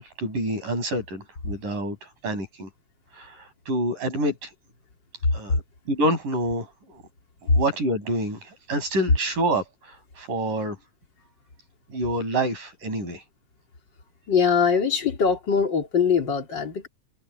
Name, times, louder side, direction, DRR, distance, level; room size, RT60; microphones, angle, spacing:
voice 1, 0.0-2.0 2.2-2.7 3.1-4.5 5.3-5.6 5.9-7.0 7.4-10.8 11.9-13.2, right 1 dB, 75° right, 9.8 m, -27 dB
voice 2, 14.3-16.9, left 6 dB, 35° left, 3.7 m, -22 dB
omnidirectional pair, 3.8 m